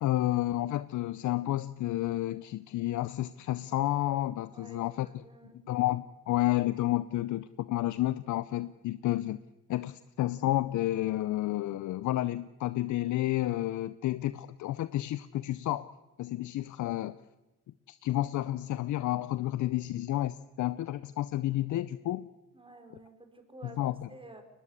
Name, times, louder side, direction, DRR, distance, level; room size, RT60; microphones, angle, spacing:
voice 1, 0.0-5.1 5.7-9.4 9.7-15.9 16.2-17.2 17.9-22.3 23.8-23.9, left 15 dB, 75° left, 15 dB, 0.7 m, -30 dB
voice 2, 4.5-5.6 22.5-23.8 24.1-24.4, right 2 dB, 15° right, 6 dB, 4.7 m, -51 dB
22.5 x 20.0 x 8.1 m, 1.1 s
cardioid pair, 90°, 30 cm